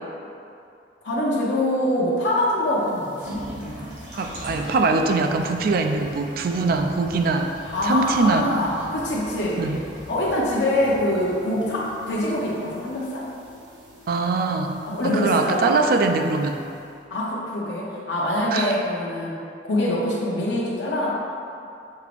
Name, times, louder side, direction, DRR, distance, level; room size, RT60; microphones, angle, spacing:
voice 1, 1.0-3.9 7.7-9.6 10.1-13.3 14.9-15.8 17.1-19.4 19.7-21.1, left 1 dB, 90° left, -6 dB, 0.8 m, -24 dB
sound 1, 2.6-16.9, equal, 75° right, 1.3 m, -41 dB
voice 2, 4.2-7.5 7.8-8.4 9.6-9.8 14.1-14.7 15.0-16.6 18.5-18.7, right 3 dB, 55° right, 5 dB, 0.3 m, -22 dB
6.4 x 2.5 x 3.3 m, 2.5 s
head